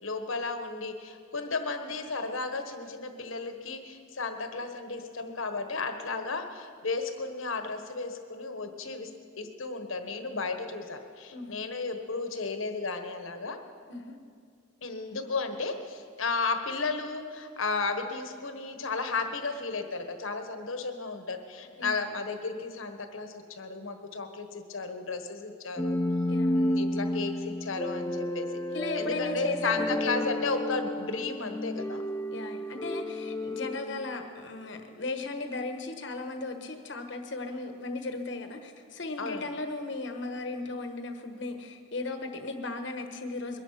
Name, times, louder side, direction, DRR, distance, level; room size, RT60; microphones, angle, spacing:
voice 1, 0.0-9.1 9.4-13.6 14.8-26.0 26.5-28.5 28.9-32.0 39.2-39.5, left 4 dB, 80° left, 7 dB, 1.3 m, -34 dB
sound 1, 25.8-34.7, left 1 dB, 10° left, 0.3 m, -31 dB
voice 2, 26.3-26.6 28.7-30.2 32.3-43.6, left 2 dB, 60° left, 6 dB, 1.2 m, -36 dB
22.0 x 10.5 x 5.8 m, 2.2 s
head